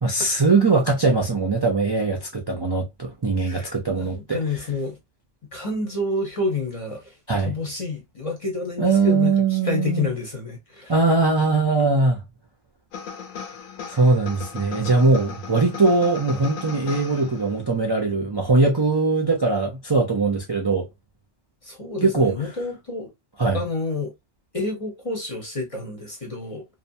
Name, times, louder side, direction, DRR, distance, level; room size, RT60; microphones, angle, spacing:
voice 1, 0.0-4.4 7.3-7.5 8.8-10.1 10.9-12.2 13.9-20.9 22.0-22.3 23.4-23.6, right 3 dB, 35° right, 0.4 m, -21 dB
voice 2, 3.4-5.0 5.5-10.9 13.9-14.0 21.6-23.1 23.5-24.1 24.5-26.7, left 3 dB, 35° left, 0.7 m, -29 dB
sound 1, 12.9-17.7, left 6 dB, 90° left, 1.1 m, -37 dB
2.8 x 2.2 x 2.6 m
omnidirectional pair, 1.3 m